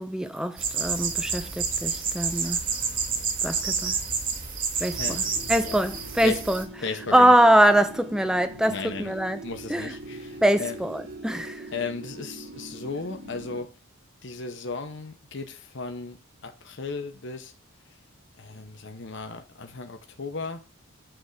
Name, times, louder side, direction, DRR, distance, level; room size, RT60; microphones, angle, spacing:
voice 1, 0.0-2.6 3.4-4.0 4.8-5.2 5.5-6.7 7.1-9.4 9.7-10.0 10.4-11.7, right 1 dB, 5° right, 0.5 m, -23 dB
sound 1, 0.6-6.6, right 5 dB, 40° right, 1.3 m, -29 dB
sound 2, 4.9-13.6, right 1 dB, 65° right, 3.6 m, -42 dB
voice 2, 6.8-7.3 8.7-9.1 9.4-10.8 11.7-13.7 14.2-16.2 16.4-17.5 18.4-20.6, left 4 dB, 60° left, 0.9 m, -35 dB
7.9 x 3.6 x 6.5 m
head